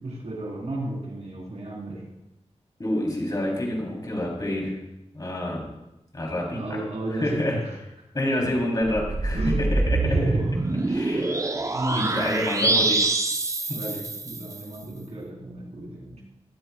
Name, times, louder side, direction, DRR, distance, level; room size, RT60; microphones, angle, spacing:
voice 1, 0.0-2.0 6.5-7.7 9.3-9.7 9.9-11.3 11.5-12.9 13.7-16.2, right 2 dB, 70° right, -3 dB, 4.0 m, -33 dB
voice 2, 2.8-4.8 5.1-5.7 6.1-6.6 7.1-7.6 8.1-10.1 10.9-11.4 11.7-13.0 13.7-13.8, left 1 dB, 35° left, -2 dB, 3.3 m, -28 dB
sound 1, 8.8-14.6, right 2 dB, 30° right, 0.7 m, -25 dB
22.0 x 8.0 x 2.3 m, 0.91 s
wide cardioid pair, 85°, 11 cm